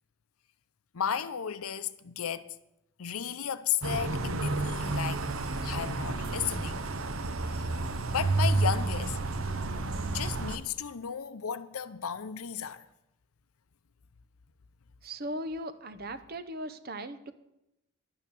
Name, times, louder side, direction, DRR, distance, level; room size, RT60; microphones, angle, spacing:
voice 1, 0.9-2.6 3.0-5.3 5.6-6.9 7.4-7.7 8.1-9.2 10.1-12.8, left 8 dB, 85° left, 0.7 m, -34 dB
sound 1, 3.8-10.6, right 2 dB, 70° right, 0.9 m, -30 dB
voice 2, 15.0-17.3, right 1 dB, 45° right, 0.8 m, -38 dB
11.0 x 9.2 x 7.0 m
head